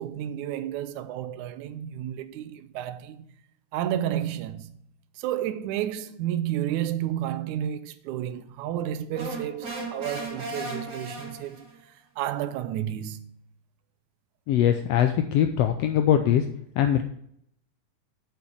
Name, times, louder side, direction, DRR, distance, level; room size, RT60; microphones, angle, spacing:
voice 1, 0.0-3.3 3.7-4.7 5.2-11.7 12.2-13.3, right 11 dB, 85° right, 2.0 m, -31 dB
sound 1, 9.1-11.8, right 2 dB, 40° right, 2.3 m, -36 dB
voice 2, 14.5-16.4 16.8-17.0, left 10 dB, 80° left, 1.4 m, -22 dB
7.0 x 5.9 x 6.5 m
omnidirectional pair, 3.4 m